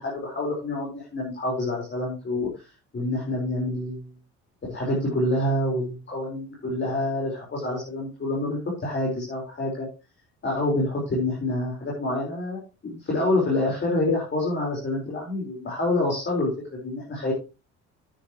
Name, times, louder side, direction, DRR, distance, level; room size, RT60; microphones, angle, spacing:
voice 1, 0.0-2.7 2.9-4.1 4.7-9.9 10.4-17.3, left 2 dB, 35° left, -3 dB, 4.3 m, -27 dB
9.7 x 9.2 x 3.0 m, 0.29 s
supercardioid pair, 85°, 32 cm